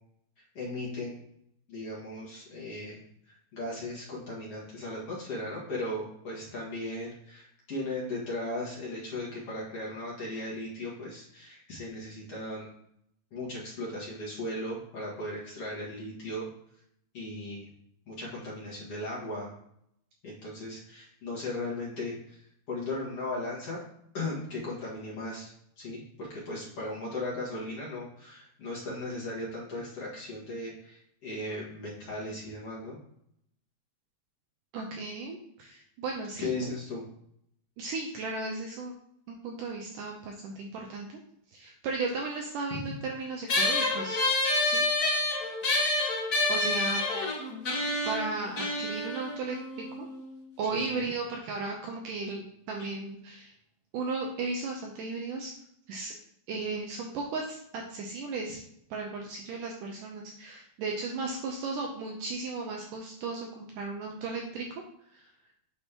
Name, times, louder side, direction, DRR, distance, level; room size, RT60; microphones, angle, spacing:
voice 1, 0.5-1.2 1.7-3.0 3.5-12.7 13.3-16.5 17.1-17.7 18.1-19.5 20.2-22.4 22.7-23.8 24.1-25.5 25.8-33.0 36.4-37.0 50.7-51.1, left 2 dB, 45° left, -6 dB, 2.4 m, -37 dB
voice 2, 34.7-36.5 37.8-38.9 39.3-41.1 41.5-44.2 44.6-45.2 46.5-47.1 48.1-50.1 50.6-53.5 53.9-55.5 55.9-56.1 56.5-58.6 58.9-64.7 65.1-65.3, right 3 dB, 75° right, 1 dB, 2.0 m, -35 dB
sound 1, 43.5-50.3, left 2 dB, 65° left, 0.9 m, -28 dB
8.8 x 6.0 x 2.9 m, 0.72 s
omnidirectional pair, 4.4 m